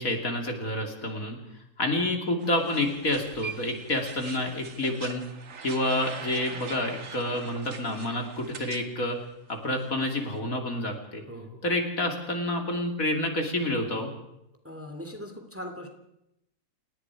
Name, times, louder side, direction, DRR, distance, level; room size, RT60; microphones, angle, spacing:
voice 1, 0.0-1.4 1.8-5.2 5.6-9.2 9.5-11.2 11.6-14.1, left 1 dB, 60° left, 3 dB, 3.4 m, -28 dB
sound 1, 2.4-8.9 9.1-10.4, right 6 dB, 55° right, 1.7 m, -43 dB
voice 2, 11.3-11.6 14.6-15.9, left 1 dB, 10° right, 4 dB, 2.7 m, -40 dB
29.5 x 19.0 x 4.8 m, 0.84 s
omnidirectional pair, 1.7 m